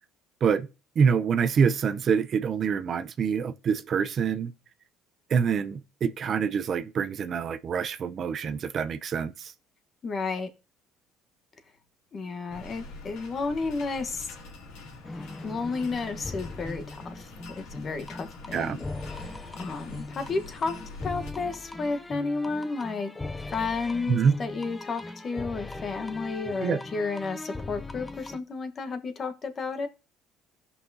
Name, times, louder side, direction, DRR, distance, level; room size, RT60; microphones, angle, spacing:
voice 1, 1.0-4.5 5.3-9.5 18.5-18.8 24.1-24.3 26.6-26.8, right 6 dB, 45° right, 0.5 m, -26 dB
voice 2, 10.0-10.5 12.1-14.3 15.4-18.8 19.1-19.3 19.6-23.1 23.5-29.9, left 4 dB, 35° left, 1.2 m, -32 dB
sound 1, 12.5-21.3, left 3 dB, 85° left, 2.9 m, -45 dB
sound 2, 15.0-28.4, left 2 dB, 15° left, 0.5 m, -39 dB
15.5 x 5.6 x 2.7 m
cardioid pair, 115°, 0 cm